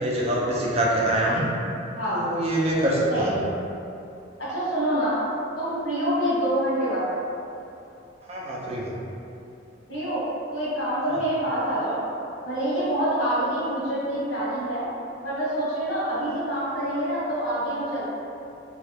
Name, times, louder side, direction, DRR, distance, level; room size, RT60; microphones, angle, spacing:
voice 1, 0.0-1.5 2.1-3.4 8.3-8.9, right 1 dB, 35° right, -4 dB, 0.5 m, -24 dB
voice 2, 3.1-3.4 4.4-5.2 5.6-7.1 9.9-10.2 10.5-12.0 12.4-14.9 15.2-18.0, right 1 dB, 75° left, -10 dB, 1.4 m, -26 dB
3.1 x 2.4 x 3.3 m, 2.7 s
head